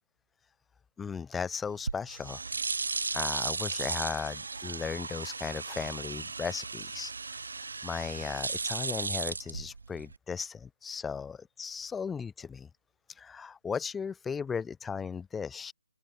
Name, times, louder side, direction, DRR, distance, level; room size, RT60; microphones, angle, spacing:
voice 1, 1.0-2.4 3.1-7.1 7.8-12.7 13.2-15.7, left 6 dB, 5° left, 0.6 m, -36 dB
sound 1, 1.7-10.2, right 4 dB, 70° right, 6.6 m, -35 dB
hypercardioid pair, 170°, 0 cm